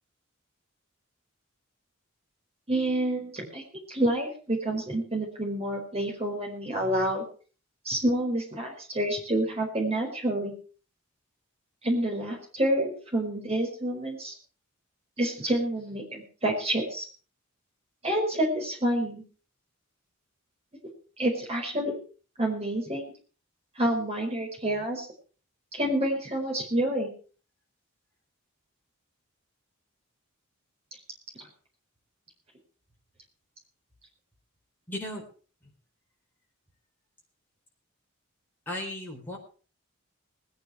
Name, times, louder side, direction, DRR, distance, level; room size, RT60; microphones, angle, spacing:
voice 1, 2.7-3.6 3.9-7.2 7.8-10.5 11.8-14.3 15.2-17.0 18.0-19.2 21.2-21.9 22.4-23.1 23.8-25.0 25.7-27.1, right 1 dB, 30° right, 0 dB, 4.8 m, -28 dB
voice 2, 34.9-35.2 38.7-39.4, left 1 dB, 10° left, -2 dB, 4.2 m, -35 dB
20.5 x 9.5 x 4.7 m, 0.39 s
head